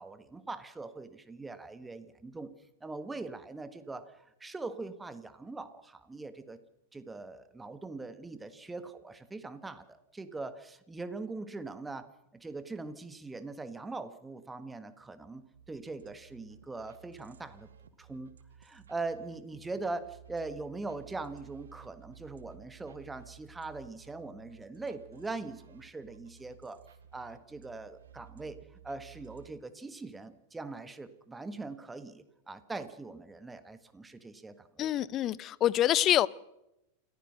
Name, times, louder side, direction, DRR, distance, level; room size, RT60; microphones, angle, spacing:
voice 1, 0.0-2.5 2.8-6.6 6.9-12.1 12.3-17.7 18.0-18.3 18.6-26.8 27.1-34.9, right 3 dB, 10° right, 12 dB, 1.5 m, -42 dB
sound 1, 15.5-29.5, right 9 dB, 65° right, 1.5 m, -56 dB
voice 2, 34.8-36.3, left 12 dB, 30° left, 22 dB, 0.6 m, -26 dB
28.0 x 15.0 x 6.5 m, 0.88 s
figure-of-eight pair, 90°, 0 cm